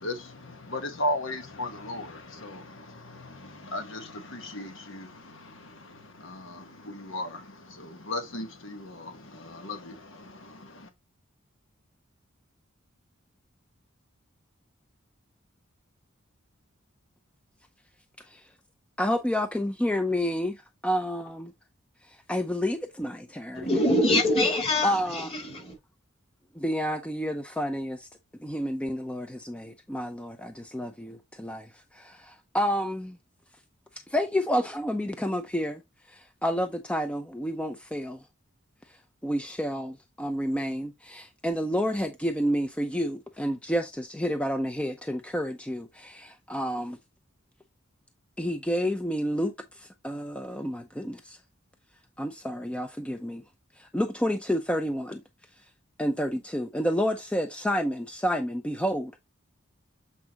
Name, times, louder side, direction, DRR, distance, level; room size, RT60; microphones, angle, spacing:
voice 1, 0.0-10.9, left 1 dB, 65° left, 1.2 m, -37 dB
voice 2, 19.0-20.6 20.8-21.5 22.3-23.7 24.8-25.3 26.6-28.1 28.4-31.7 31.9-33.2 34.1-35.8 36.1-38.2 39.2-47.0 48.4-51.4 52.2-53.4 53.8-55.2 56.0-59.2, equal, 5° left, 0.6 m, -29 dB
voice 3, 23.5-25.8, left 1 dB, 30° left, 2.7 m, -24 dB
8.4 x 4.7 x 2.9 m
head